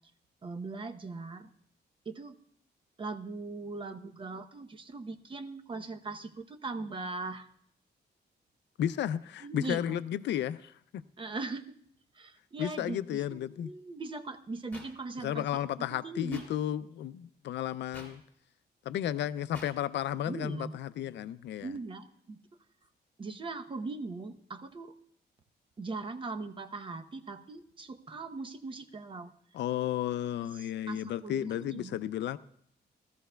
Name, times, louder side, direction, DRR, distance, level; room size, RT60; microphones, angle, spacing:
voice 1, 0.4-1.5 2.0-2.4 3.0-7.5 9.4-10.0 11.2-11.8 12.1-16.5 20.2-20.7 21.6-22.4 23.2-24.9 25.8-29.3 30.4-32.0, right 3 dB, 30° right, 8 dB, 0.8 m, -40 dB
voice 2, 8.8-11.0 12.6-13.7 15.2-18.2 18.9-21.7 29.5-32.4, left 11 dB, 90° left, 14 dB, 0.4 m, -33 dB
sound 1, 14.7-14.9 16.3-16.5 17.9-18.1 19.5-19.7, left 2 dB, 10° left, 3.6 m, -46 dB
19.5 x 13.5 x 2.2 m, 0.67 s
wide cardioid pair, 150°, 18 cm